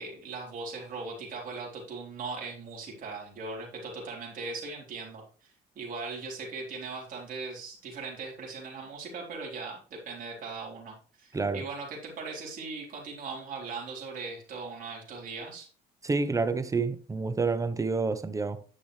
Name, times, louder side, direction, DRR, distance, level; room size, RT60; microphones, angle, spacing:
voice 1, 0.0-15.7, right 4 dB, 55° right, 4.1 m, -39 dB
voice 2, 11.3-11.6 16.0-18.6, right 4 dB, 20° right, 0.8 m, -28 dB
10.0 x 6.1 x 3.3 m
cardioid pair, 110°, 17 cm